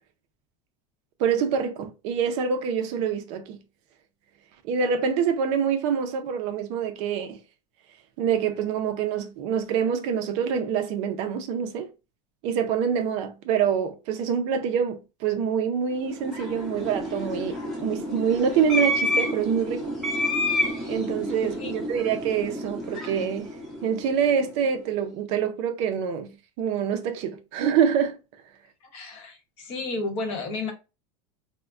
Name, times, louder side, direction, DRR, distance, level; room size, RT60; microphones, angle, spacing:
voice 1, 1.2-3.6 4.6-7.4 8.2-11.9 12.4-19.9 20.8-23.5 23.8-28.2, right 7 dB, 45° right, 0.4 m, -26 dB
sound 1, 16.0-24.5, left 1 dB, ahead, 0.8 m, -29 dB
voice 2, 28.9-30.7, left 3 dB, 40° left, 0.8 m, -32 dB
3.5 x 2.1 x 2.3 m
supercardioid pair, 170°, 15 cm